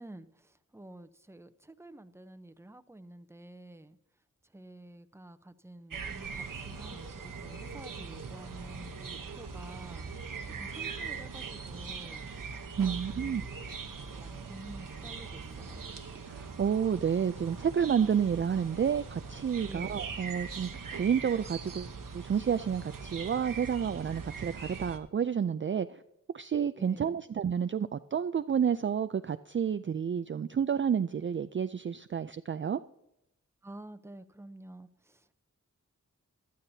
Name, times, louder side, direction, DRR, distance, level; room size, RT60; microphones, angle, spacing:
voice 1, 0.0-4.0 4.5-10.3 10.6-12.3 12.8-13.5 14.1-15.8 19.7-20.2 26.7-27.2 33.6-35.3, right 1 dB, 10° right, 0.7 m, -49 dB
sound 1, 5.9-25.0, right 5 dB, 75° right, 1.1 m, -41 dB
voice 2, 12.8-13.4 16.3-26.0 26.3-32.8, right 7 dB, 40° right, 0.4 m, -30 dB
15.5 x 11.5 x 2.8 m
cardioid pair, 50°, 33 cm